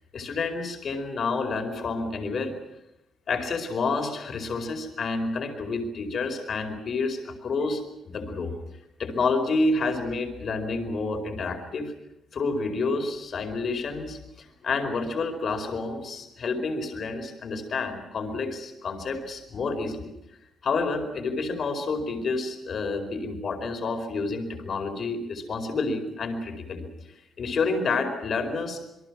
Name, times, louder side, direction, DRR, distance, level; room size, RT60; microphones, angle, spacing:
voice 1, 0.1-2.5 3.3-8.5 9.0-11.9 12.3-20.1 20.6-26.9 27.4-28.8, left 3 dB, 50° left, 6 dB, 4.7 m, -29 dB
27.5 x 23.0 x 6.1 m, 0.90 s
cardioid pair, 135°, 0 cm